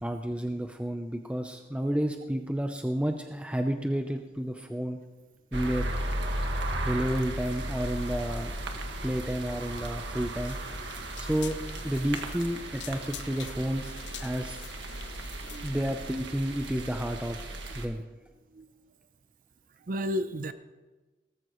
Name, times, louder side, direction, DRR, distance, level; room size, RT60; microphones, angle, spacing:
voice 1, 0.0-5.0 5.5-5.9 6.8-8.5 9.0-10.6 11.2-11.6 11.8-14.6 15.6-18.0, equal, 5° right, 5 dB, 0.6 m, -31 dB
sound 1, 5.5-17.9, right 1 dB, 90° right, 1.7 m, -35 dB
sound 2, 10.5-15.7, left 10 dB, 85° left, 0.6 m, -47 dB
voice 2, 19.9-20.5, equal, 50° right, 12 dB, 0.5 m, -32 dB
18.5 x 14.5 x 3.1 m, 1.2 s
head